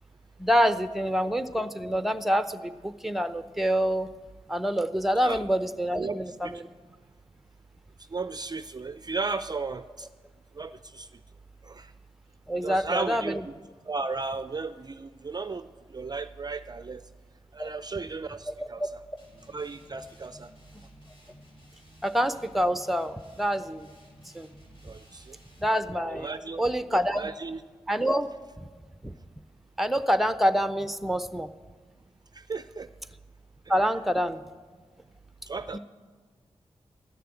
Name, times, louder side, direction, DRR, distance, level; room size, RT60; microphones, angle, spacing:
voice 1, 0.4-4.1 4.5-6.6 12.5-13.4 17.6-17.7 18.6-18.9 22.0-23.9 24.3-24.5 25.6-26.3 26.6-27.2 27.9-28.3 28.6-28.7 29.0-29.2 29.8-31.5 33.7-34.4 35.7-35.8, equal, ahead, 11 dB, 0.7 m, -26 dB
voice 2, 6.0-6.5 8.0-10.1 10.5-11.1 11.6-11.9 12.6-13.5 13.9-17.0 17.5-18.8 19.5-20.5 24.8-25.4 26.1-26.6 26.9-27.6 32.3-32.9 35.5-35.8, right 4 dB, 35° right, 12 dB, 0.4 m, -35 dB
sound 1, 19.2-25.8, equal, 50° left, 4.7 m, -55 dB
13.0 x 6.8 x 9.0 m, 1.5 s
cardioid pair, 45°, 12 cm